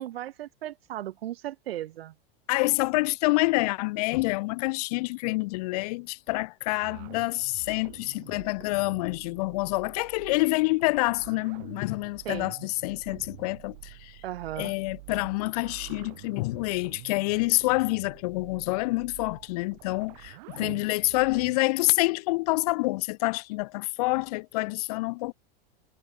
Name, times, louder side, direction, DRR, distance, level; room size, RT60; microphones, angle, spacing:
voice 1, 0.0-2.1 12.2-12.5 14.2-14.7 20.6-20.8, right 13 dB, 80° right, 2.5 m, -36 dB
voice 2, 2.5-14.2 14.6-25.3, left 24 dB, 40° left, 1.0 m, -27 dB
sound 1, 6.8-21.6, right 22 dB, 45° right, 6.2 m, -48 dB
supercardioid pair, 170°, 30 cm